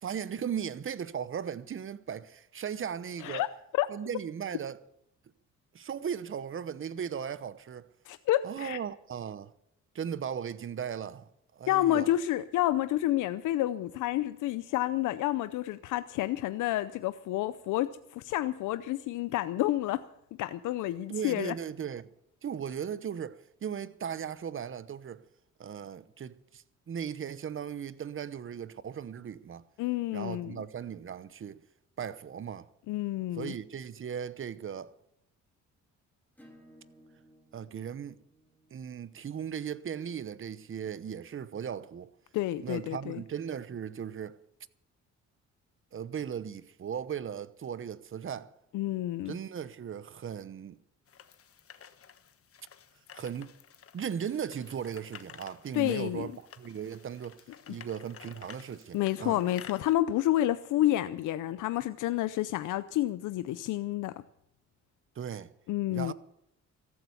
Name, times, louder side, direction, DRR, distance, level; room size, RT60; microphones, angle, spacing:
voice 1, 0.0-3.5 3.9-4.8 5.7-7.9 8.4-9.5 9.9-12.1 21.1-22.1 22.4-25.2 25.6-29.6 30.1-31.6 32.0-32.7 33.4-34.9 37.5-38.2 38.7-42.1 42.6-44.4 45.9-48.5 49.3-50.8 53.1-53.6 53.9-59.4 65.2-65.5 65.9-66.1, right 8 dB, 45° right, 0.9 m, -37 dB
voice 2, 8.1-8.8 11.7-20.1 20.4-21.5 29.8-30.6 32.9-33.5 42.3-43.2 48.7-49.3 55.7-56.3 58.9-64.1 65.7-66.1, left 14 dB, 85° left, 0.6 m, -29 dB
Acoustic guitar / Strum, 36.4-41.6, equal, 5° left, 3.7 m, -62 dB
sound 1, 51.1-59.9, left 8 dB, 50° left, 1.2 m, -52 dB
14.5 x 12.5 x 7.1 m
cardioid pair, 90°, 30 cm